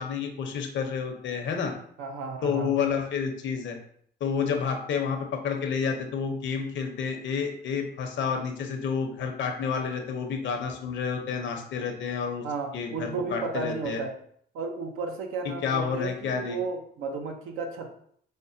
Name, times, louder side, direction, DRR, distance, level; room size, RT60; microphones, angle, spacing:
voice 1, 0.0-1.7 2.4-3.8 4.2-12.4 12.7-14.0 15.6-16.6, left 6 dB, 70° left, 4 dB, 0.7 m, -29 dB
voice 2, 2.0-2.7 12.4-14.1 14.5-18.0, right 4 dB, 90° right, 3 dB, 0.6 m, -33 dB
5.1 x 2.1 x 2.6 m, 0.64 s
cardioid pair, 90°, 20 cm